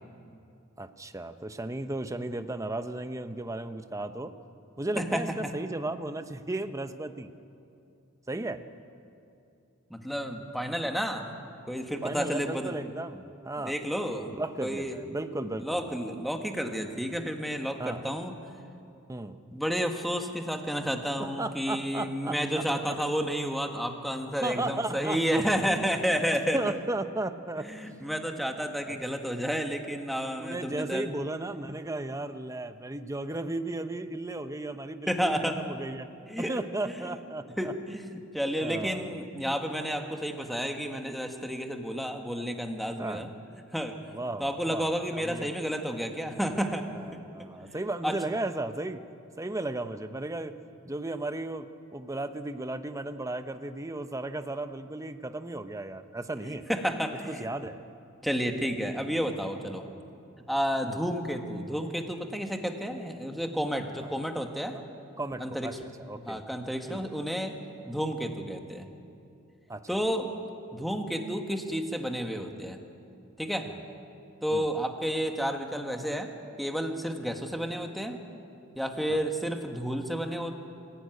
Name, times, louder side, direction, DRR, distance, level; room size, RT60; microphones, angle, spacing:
voice 1, 0.8-4.3 4.8-7.3 8.3-8.6 12.0-13.8 14.4-15.9 17.8-18.0 19.1-19.4 21.2-23.0 24.4-25.7 26.5-27.7 28.9-29.0 30.4-36.1 36.4-37.7 38.6-39.2 43.0-43.3 44.1-45.5 46.9-49.0 49.4-50.5 50.8-56.7 57.3-57.8 59.9-60.1 60.8-61.0 65.2-66.4 66.9-67.0 69.7-69.8 73.7-73.8 74.5-74.6 79.1-79.2, right 2 dB, 15° right, 9 dB, 0.7 m, -35 dB
voice 2, 9.9-11.3 11.7-12.7 13.6-14.3 14.6-15.0 15.6-18.3 19.5-26.8 27.6-31.1 35.1-35.6 36.3-36.6 37.0-37.2 37.6-43.3 43.7-43.9 44.4-46.9 48.0-48.2 56.4-57.4 58.2-59.8 60.5-64.7 65.4-65.7 66.2-67.6 67.9-68.9 69.9-70.3 70.7-72.8 73.4-73.7 74.4-76.3 76.6-78.2 78.7-80.6, equal, ahead, 4 dB, 1.6 m, -31 dB
26.0 x 16.0 x 9.3 m, 2.6 s
head